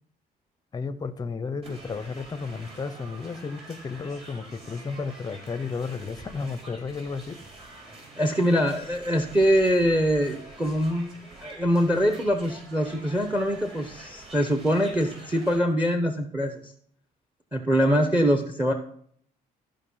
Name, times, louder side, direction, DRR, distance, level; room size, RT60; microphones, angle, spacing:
voice 1, 0.7-7.4, left 4 dB, 25° left, 13 dB, 0.7 m, -33 dB
sound 1, 1.6-15.6, right 2 dB, 35° right, 4.8 m, -46 dB
voice 2, 8.2-11.1 11.4-16.7 17.5-18.7, equal, 10° right, 6 dB, 1.0 m, -23 dB
14.0 x 5.2 x 5.6 m, 0.63 s
cardioid pair, 110°, 17 cm